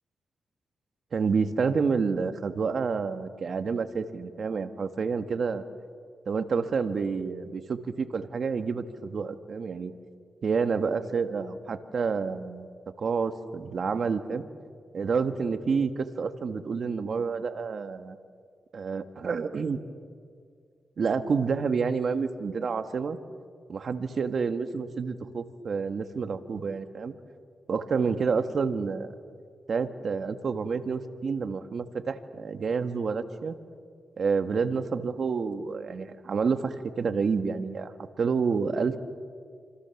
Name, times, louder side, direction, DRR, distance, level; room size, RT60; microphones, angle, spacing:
voice 1, 1.1-5.6 6.3-9.9 10.4-12.7 13.0-14.4 14.9-18.2 18.7-19.8 21.0-23.2 23.7-27.1 27.7-29.1 29.7-33.6 34.2-39.0, right 5 dB, 60° right, 9 dB, 1.5 m, -29 dB
29.0 x 26.0 x 7.1 m, 2.1 s
cardioid pair, 70°, 0 cm